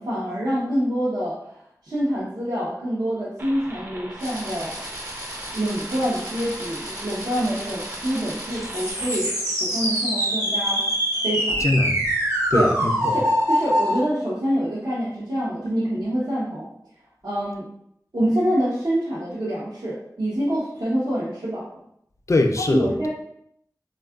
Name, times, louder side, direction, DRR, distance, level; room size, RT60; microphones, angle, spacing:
voice 1, 0.0-1.6 1.8-4.7 5.5-9.3 9.6-10.8 11.2-11.7 12.5-12.7 13.1-16.7 17.2-17.7 18.1-21.7 22.7-23.1, equal, 75° right, -9 dB, 0.7 m, -26 dB
sound 1, 3.4-8.9, right 1 dB, 30° right, 0.5 m, -40 dB
sound 2, 4.2-14.0, equal, 50° right, 1.1 m, -26 dB
voice 2, 11.6-12.0 12.5-13.2 22.3-23.1, left 2 dB, 50° left, 5 dB, 0.3 m, -22 dB
3.5 x 2.3 x 2.3 m, 0.73 s
wide cardioid pair, 50°, 7 cm